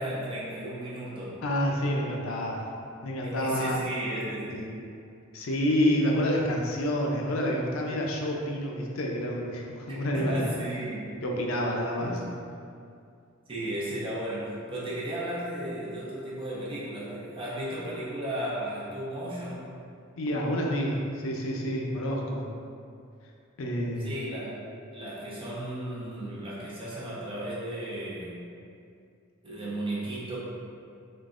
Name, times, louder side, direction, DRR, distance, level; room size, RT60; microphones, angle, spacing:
voice 1, 0.0-1.4 3.2-4.9 10.1-11.2 12.0-12.3 13.5-19.7 24.0-24.6 24.9-28.4 29.4-30.4, right 1 dB, 25° right, -8 dB, 0.9 m, -35 dB
voice 2, 1.4-2.7 3.0-3.8 4.5-4.6 5.3-10.4 11.2-12.2 20.2-22.5 23.6-24.1, equal, 85° left, -1 dB, 0.5 m, -28 dB
3.7 x 3.4 x 2.5 m, 2.4 s
head